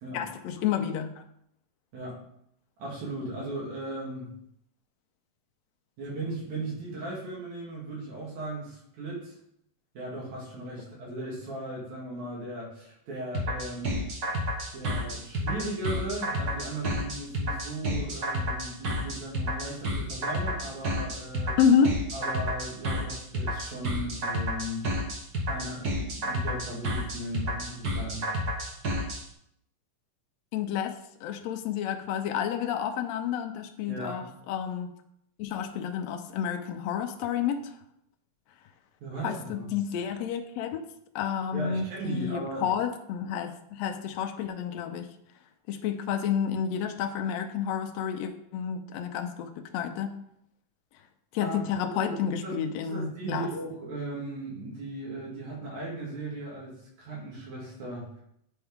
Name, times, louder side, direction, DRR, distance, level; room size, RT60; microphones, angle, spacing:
voice 1, 0.1-1.2 21.6-22.0 30.5-34.9 35.4-37.7 39.2-40.8 41.2-45.1 45.7-50.2 51.3-53.5, left 8 dB, 75° left, 6 dB, 1.8 m, -30 dB
voice 2, 2.8-4.3 6.0-9.3 10.0-14.0 14.7-21.6 22.1-24.8 25.5-28.2 33.9-34.2 39.0-39.7 41.5-42.6 51.4-51.6 52.0-52.2 52.4-56.7 57.0-58.1, right 1 dB, 75° right, -5 dB, 3.6 m, -37 dB
sound 1, 13.3-29.2, equal, 50° right, 1.2 m, -30 dB
9.6 x 4.5 x 3.6 m, 0.74 s
omnidirectional pair, 3.3 m